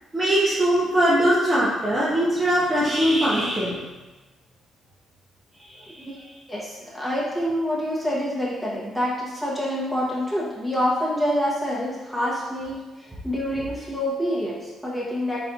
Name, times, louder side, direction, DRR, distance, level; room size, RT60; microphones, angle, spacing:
voice 1, 0.1-3.8, equal, 20° right, -9 dB, 0.9 m, -21 dB
voice 2, 6.5-15.4, equal, 5° left, -6 dB, 1.2 m, -27 dB
4.1 x 4.0 x 2.8 m, 1.2 s
cardioid pair, 100°, 0 cm